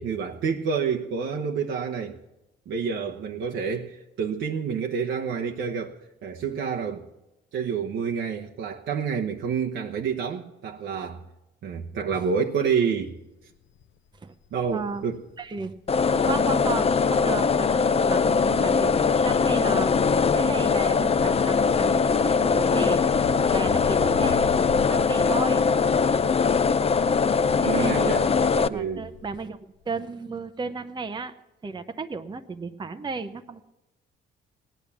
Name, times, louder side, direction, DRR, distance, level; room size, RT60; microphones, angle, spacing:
voice 1, 0.0-2.2 2.7-7.0 7.5-11.2 11.6-13.1 14.5-15.2 27.6-28.3 28.7-29.1, right 6 dB, 70° right, 0 dB, 1.0 m, -28 dB
Wind, 12.5-12.8 13.2-13.3 13.5-17.1 17.4-29.5 29.8-29.9, left 7 dB, 75° left, 0.7 m, -42 dB
voice 2, 14.7-15.0 15.4-15.7 16.0-19.9 20.4-23.0 23.5-25.6 27.6-28.1 28.5-31.3 31.6-33.7, right 4 dB, 20° right, 8 dB, 0.7 m, -34 dB
sound 1, 15.9-28.7, left 5 dB, 30° left, 0.6 m, -21 dB
16.0 x 10.5 x 7.1 m, 0.99 s
cardioid pair, 90°, 20 cm